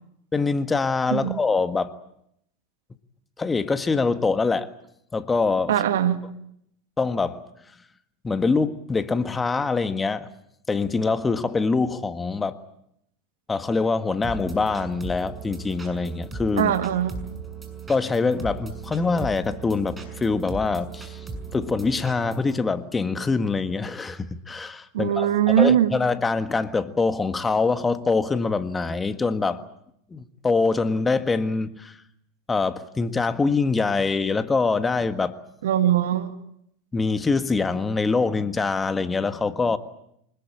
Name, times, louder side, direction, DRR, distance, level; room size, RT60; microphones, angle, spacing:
voice 1, 0.3-1.9 3.4-4.7 5.1-5.8 7.0-7.4 8.2-10.3 10.7-12.6 13.5-16.7 17.9-21.2 21.5-29.6 30.1-31.9 32.5-35.3 36.9-39.8, left 4 dB, 15° left, 1.6 m, -24 dB
voice 2, 5.7-6.2 16.6-17.2 24.9-25.9 35.6-36.3, right 11 dB, 75° right, 2.1 m, -21 dB
sound 1, 14.2-22.6, right 4 dB, 15° right, 6.4 m, -37 dB
25.5 x 20.5 x 8.9 m
hypercardioid pair, 90°, 0 cm